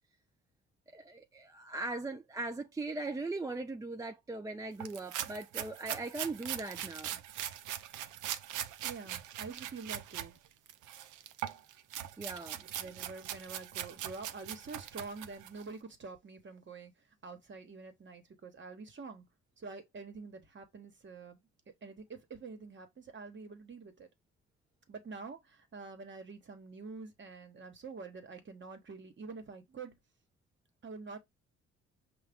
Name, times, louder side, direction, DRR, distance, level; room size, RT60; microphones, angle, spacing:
voice 1, 0.9-7.2 12.2-12.6, right 2 dB, 10° right, 0.4 m, -39 dB
sound 1, 4.8-10.3 10.7-15.6, right 11 dB, 85° right, 0.5 m, -41 dB
voice 2, 8.8-10.4 12.8-16.9 17.2-19.2 19.6-21.4 21.8-24.1 24.9-29.9 30.8-31.2, right 4 dB, 40° right, 1.2 m, -47 dB
5.6 x 2.3 x 3.5 m
cardioid pair, 90°, 30 cm